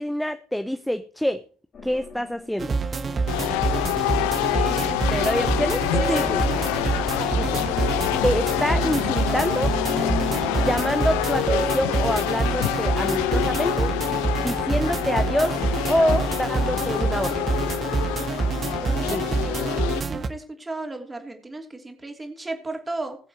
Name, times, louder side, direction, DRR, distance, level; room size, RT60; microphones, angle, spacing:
voice 1, 0.0-1.4 1.8-2.7 5.1-6.4 7.0-7.6 8.2-9.7 10.5-13.9 14.4-15.6 15.9-17.5 19.0-19.3, equal, ahead, 11 dB, 0.7 m, -26 dB
sound 1, 1.7-11.4 11.9-19.7, left 4 dB, 35° left, 2.6 m, -39 dB
sound 2, 2.6-20.3, right 4 dB, 30° right, 1.2 m, -26 dB
sound 3, 3.3-20.0, left 19 dB, 65° left, 0.4 m, -27 dB
voice 2, 4.5-5.7 6.0-6.5 6.8-7.1 18.8-23.2, right 2 dB, 15° right, 4 dB, 3.0 m, -36 dB
21.0 x 7.5 x 3.0 m, 0.38 s
figure-of-eight pair, 55°, 0 cm